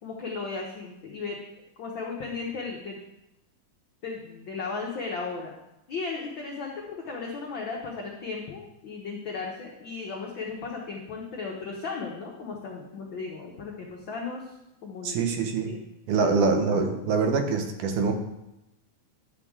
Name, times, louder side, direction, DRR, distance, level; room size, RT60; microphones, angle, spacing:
voice 1, 0.0-3.0 4.0-5.6 5.9-14.4 14.8-15.2 15.7-15.8 16.2-16.3, left 4 dB, 75° left, -1 dB, 1.1 m, -35 dB
voice 2, 15.0-15.7 16.1-18.1, right 4 dB, 80° right, 5 dB, 2.5 m, -24 dB
11.5 x 7.1 x 3.6 m, 0.90 s
omnidirectional pair, 3.5 m